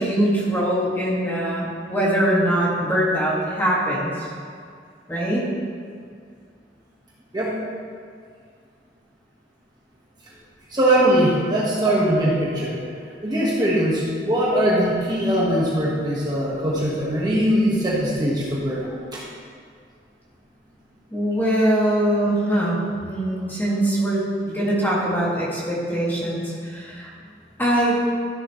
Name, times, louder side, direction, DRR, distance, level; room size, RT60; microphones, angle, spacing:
voice 1, 0.0-4.1 5.1-5.4 21.1-27.1 27.6-28.0, right 1 dB, 10° left, -6 dB, 1.9 m, -22 dB
voice 2, 10.7-12.8 13.2-19.2, right 1 dB, 25° right, -6 dB, 1.4 m, -21 dB
13.0 x 7.4 x 3.1 m, 2.2 s
head